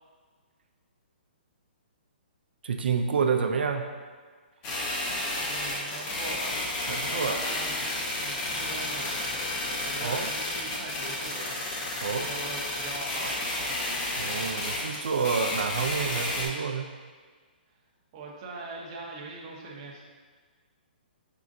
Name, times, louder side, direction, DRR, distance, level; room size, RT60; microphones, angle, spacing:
voice 1, 2.6-3.9 6.8-7.5 9.6-10.3 12.0-12.3 14.2-16.8, right 5 dB, 80° right, 4 dB, 0.3 m, -29 dB
sound 1, 4.6-16.5, left 2 dB, 15° left, 0.5 m, -32 dB
voice 2, 5.4-6.7 7.1-9.1 9.4-11.9 12.2-13.8 18.1-20.0, right 3 dB, 25° right, -2 dB, 0.6 m, -42 dB
4.2 x 3.7 x 2.5 m, 1.6 s
hypercardioid pair, 170°, 6 cm